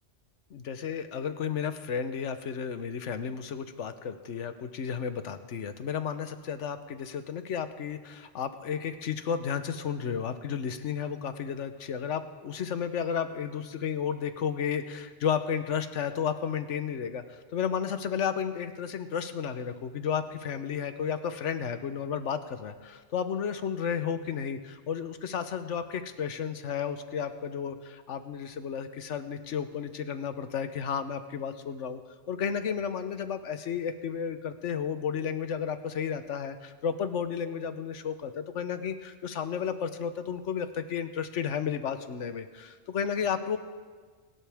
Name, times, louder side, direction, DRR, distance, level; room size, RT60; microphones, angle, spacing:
voice 1, 0.5-32.0 32.3-43.6, left 7 dB, 85° left, 10 dB, 1.2 m, -33 dB
28.0 x 12.0 x 3.5 m, 1.5 s
omnidirectional pair, 1.2 m